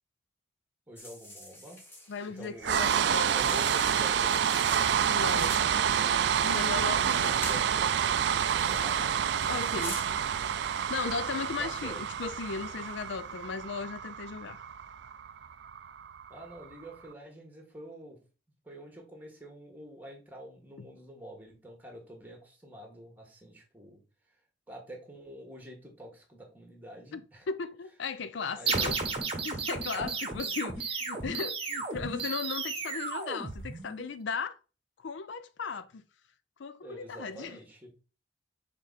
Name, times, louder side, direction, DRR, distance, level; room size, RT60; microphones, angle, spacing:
voice 1, 0.9-1.8 2.3-4.3 6.9-8.1 8.7-9.7 10.1-10.2 11.6-12.0 16.3-18.2 18.6-24.0 24.3-24.4 24.7-27.5 28.5-29.2 29.9-30.5 36.8-37.9, equal, 10° right, 1.8 m, -47 dB
sound 1, 1.0-7.7 8.4-9.0 9.4-10.1, left 1 dB, 10° left, 1.3 m, -45 dB
voice 2, 2.1-3.6 5.1-5.6 6.4-7.6 8.6-8.8 9.5-10.0 10.9-14.6 20.8-20.9 27.1-27.2 27.5-29.0 29.4-34.6 35.0-36.0 36.6-37.6, left 5 dB, 65° left, 0.4 m, -36 dB
sound 2, 2.6-16.7, right 8 dB, 60° right, 0.3 m, -28 dB
sound 3, 28.7-34.1, right 4 dB, 30° right, 1.2 m, -33 dB
6.3 x 3.7 x 4.1 m
head